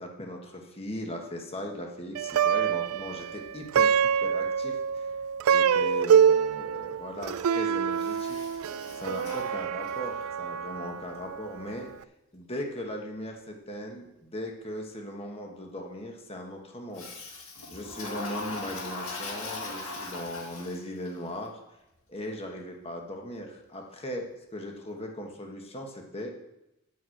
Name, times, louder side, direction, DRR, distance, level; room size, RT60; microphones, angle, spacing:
voice 1, 0.0-3.9 4.2-5.1 5.5-8.4 8.9-11.9 12.3-17.4 17.7-21.6 22.1-24.3 24.5-26.3, left 1 dB, 25° left, 2 dB, 1.3 m, -38 dB
Plucked string instrument, 2.1-11.6, right 7 dB, 75° right, 0.3 m, -26 dB
Toilet flush, 7.9-10.2 16.9-21.1, left 2 dB, 70° left, 1.9 m, -40 dB
9.1 x 6.3 x 7.8 m, 0.91 s
head